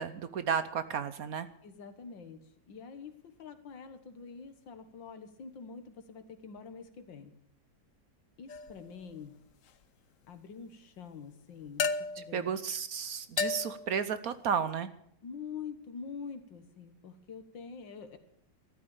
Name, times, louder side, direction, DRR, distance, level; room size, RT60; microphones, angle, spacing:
voice 1, 0.0-1.5 12.3-14.9, right 7 dB, 60° right, 13 dB, 1.1 m, -33 dB
voice 2, 1.6-2.4 2.7-7.3 8.4-9.4 10.3-12.5 15.2-18.2, left 6 dB, 85° left, 9 dB, 2.2 m, -46 dB
sound 1, 8.5-8.9 11.8-12.4 13.4-14.0, left 5 dB, 55° left, 1.0 m, -33 dB
14.0 x 12.5 x 7.1 m, 0.67 s
omnidirectional pair, 2.0 m